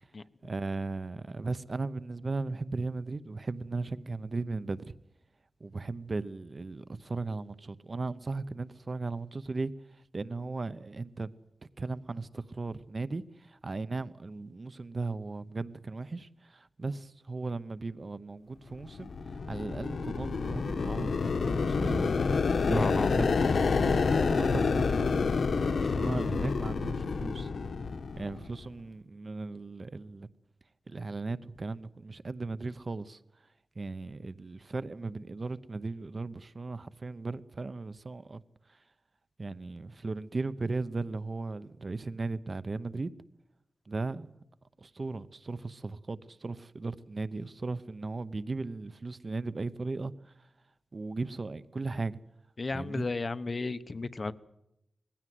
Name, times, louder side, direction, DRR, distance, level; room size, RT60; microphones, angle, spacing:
voice 1, 0.4-4.9 5.6-9.7 10.1-11.3 11.8-19.1 19.5-21.2 21.4-22.1 22.7-23.3 23.9-25.2 25.7-27.5 28.2-30.3 30.9-33.2 33.8-38.4 39.4-43.1 43.9-44.3 44.8-50.3 50.9-52.2 52.7-53.1, right 3 dB, 45° right, 0.8 m, -37 dB
sound 1, 18.8-28.6, left 4 dB, 80° left, 1.2 m, -28 dB
voice 2, 22.7-23.1 52.6-54.3, left 3 dB, 45° left, 0.9 m, -33 dB
20.5 x 16.0 x 9.4 m
wide cardioid pair, 110°, 0 cm